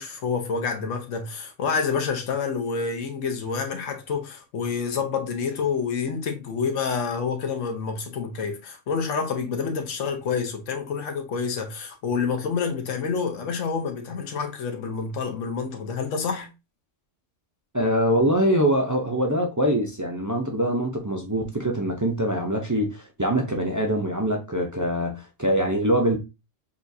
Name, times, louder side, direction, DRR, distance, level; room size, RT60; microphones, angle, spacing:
voice 1, 0.0-16.5, left 5 dB, 80° left, 1.2 m, -28 dB
voice 2, 17.7-26.2, equal, 30° right, 0.3 m, -24 dB
6.8 x 2.4 x 2.7 m
omnidirectional pair, 1.3 m